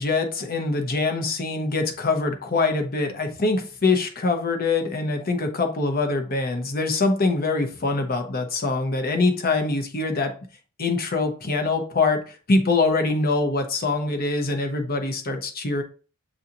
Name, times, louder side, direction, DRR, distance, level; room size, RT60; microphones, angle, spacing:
voice 1, 0.0-10.3 10.8-15.8, left 3 dB, 40° left, 5 dB, 0.8 m, -24 dB
7.0 x 2.5 x 2.8 m, 0.38 s
head